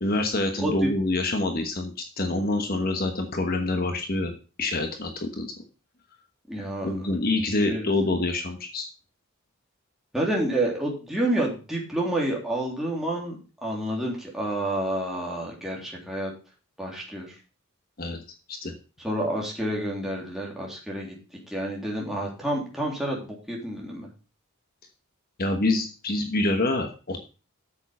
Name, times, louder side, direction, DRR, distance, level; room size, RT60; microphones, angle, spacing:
voice 1, 0.0-4.3 4.6-5.6 6.8-8.9 18.0-18.2 18.5-18.7 25.4-27.2, left 2 dB, 45° left, 5 dB, 1.1 m, -26 dB
voice 2, 0.6-0.9 6.5-7.0 7.6-7.9 10.1-16.3 16.8-17.4 19.0-21.1 21.5-24.1, right 1 dB, ahead, -3 dB, 3.2 m, -29 dB
8.5 x 7.2 x 5.5 m, 0.34 s
head